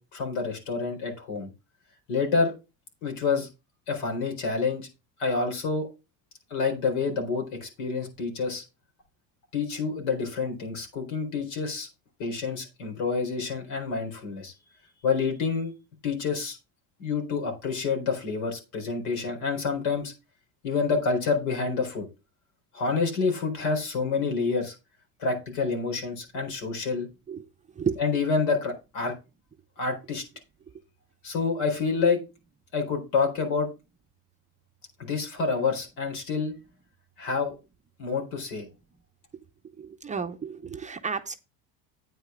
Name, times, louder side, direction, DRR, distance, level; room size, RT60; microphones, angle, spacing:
voice 1, 0.0-1.5 2.1-2.5 3.0-3.5 3.9-4.9 5.2-5.9 6.5-8.6 9.5-11.9 12.2-14.5 15.0-15.7 16.0-16.6 17.0-20.1 20.6-22.1 22.7-24.7 25.2-27.1 28.0-29.1 29.8-30.2 31.2-32.2 32.7-33.7 35.0-36.5 37.2-37.5 38.0-38.7, left 4 dB, 80° left, 3 dB, 4.3 m, -28 dB
voice 2, 39.8-41.3, right 6 dB, 20° right, 6 dB, 0.6 m, -32 dB
9.1 x 8.4 x 3.8 m, 0.28 s
cardioid pair, 130°, 39 cm